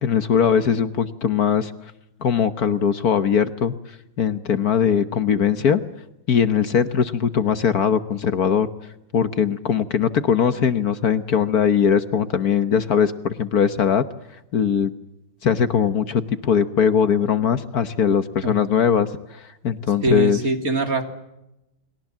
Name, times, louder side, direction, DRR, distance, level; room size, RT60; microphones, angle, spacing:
voice 1, 0.0-1.7 2.2-3.8 4.2-5.8 6.3-8.7 9.1-14.0 14.5-14.9 15.4-20.4, left 7 dB, 55° left, 11 dB, 1.5 m, -20 dB
voice 2, 20.0-21.0, right 1 dB, 50° right, 6 dB, 3.3 m, -22 dB
30.0 x 22.5 x 7.4 m, 0.89 s
omnidirectional pair, 2.0 m